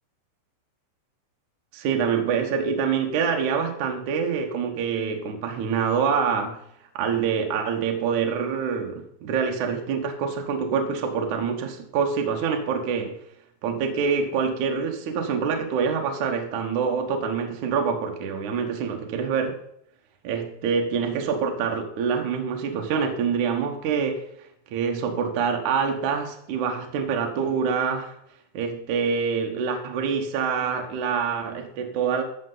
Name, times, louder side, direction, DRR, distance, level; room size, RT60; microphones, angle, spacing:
voice 1, 1.7-6.6 6.9-13.2 13.6-19.6 20.2-24.3 24.7-28.1 28.5-32.2, right 6 dB, 75° right, 2 dB, 1.8 m, -26 dB
13.5 x 6.7 x 4.0 m, 0.72 s
omnidirectional pair, 5.5 m